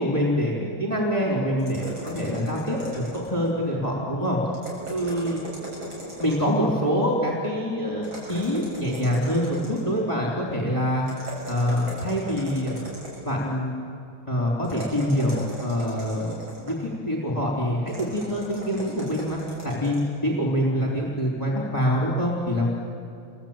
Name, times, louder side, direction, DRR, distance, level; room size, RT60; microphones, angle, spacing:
voice 1, 0.0-4.4 4.9-5.4 6.2-11.1 11.5-12.9 13.2-13.7 14.3-19.4 19.6-22.7, equal, 20° left, -4 dB, 3.9 m, -25 dB
sound 1, 1.6-3.5 4.5-6.6 8.0-10.0 11.1-13.4 14.6-16.9 17.9-20.1, right 1 dB, 75° right, 7.9 m, -38 dB
29.0 x 22.5 x 8.9 m, 2.4 s
omnidirectional pair, 2.2 m